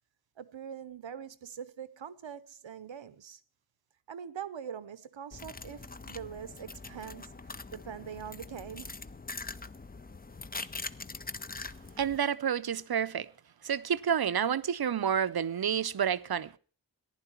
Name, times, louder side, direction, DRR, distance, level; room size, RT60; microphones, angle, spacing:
voice 1, 0.4-3.4 4.1-9.0, right 8 dB, 80° right, 0.9 m, -43 dB
sound 1, 5.3-12.2, left 3 dB, 20° left, 0.5 m, -43 dB
voice 2, 12.0-13.3 13.6-16.6, right 8 dB, 55° right, 0.6 m, -29 dB
14.5 x 11.0 x 4.4 m
wide cardioid pair, 60°, 45 cm